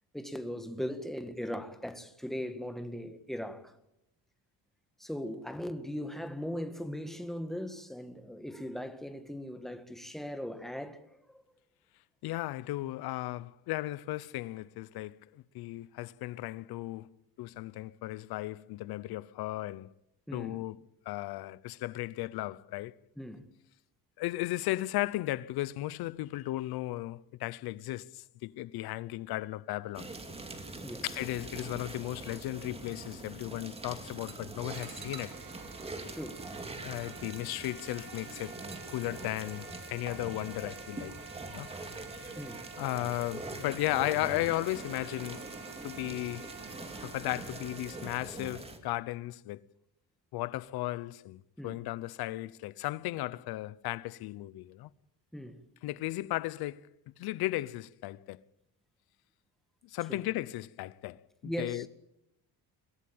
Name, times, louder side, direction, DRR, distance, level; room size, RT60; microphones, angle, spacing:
voice 1, 0.1-3.7 5.0-11.4 20.3-20.7 23.2-23.5 30.8-31.0 36.1-36.5 42.4-42.7 51.6-51.8 55.3-55.6 60.1-60.2 61.4-61.9, equal, ahead, 1.6 m, -39 dB
voice 2, 12.2-19.9 20.3-20.8 21.1-23.0 24.2-30.1 31.0-35.4 36.8-38.6 38.9-41.1 41.5-41.7 42.2-42.4 42.8-45.5 45.8-46.5 47.0-49.6 50.3-54.9 55.8-56.9 57.2-58.4 59.8-61.9, left 17 dB, 85° left, 0.9 m, -35 dB
sound 1, 29.9-48.8, right 2 dB, 15° right, 2.6 m, -43 dB
sound 2, 34.7-48.1, right 5 dB, 70° right, 5.8 m, -49 dB
23.5 x 17.0 x 8.8 m
cardioid pair, 150°, 37 cm